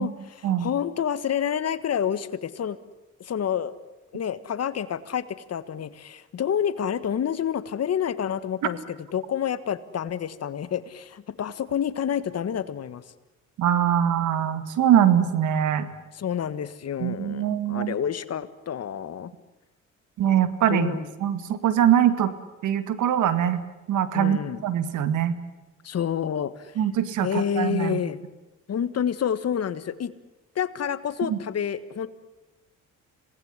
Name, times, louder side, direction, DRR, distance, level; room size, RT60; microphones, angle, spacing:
voice 1, 0.0-2.8 3.2-3.7 4.1-13.0 16.1-19.3 20.7-21.1 24.1-24.6 25.8-26.7 27.2-28.2 28.7-30.1 30.5-32.1, left 8 dB, 55° left, 14 dB, 1.6 m, -28 dB
voice 2, 13.6-15.9 17.0-17.9 20.2-22.3 22.6-23.6 23.9-25.3 26.8-28.0 31.3-31.4, right 10 dB, 80° right, 12 dB, 2.2 m, -23 dB
26.5 x 19.0 x 9.8 m, 1.1 s
cardioid pair, 90°, 30 cm